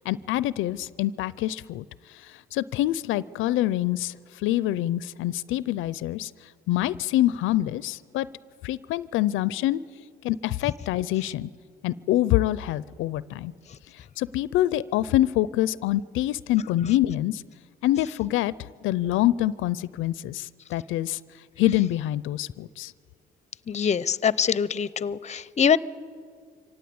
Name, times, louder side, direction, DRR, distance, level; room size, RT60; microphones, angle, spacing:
voice 1, 0.0-6.3 6.7-8.3 8.6-9.8 10.2-11.5 11.8-13.5 13.9-17.4 17.8-21.2 21.6-22.9, left 14 dB, 90° left, 19 dB, 0.5 m, -26 dB
voice 2, 23.7-25.8, left 7 dB, 35° left, 20 dB, 0.6 m, -24 dB
24.5 x 17.5 x 8.6 m, 2.1 s
cardioid pair, 90°, 20 cm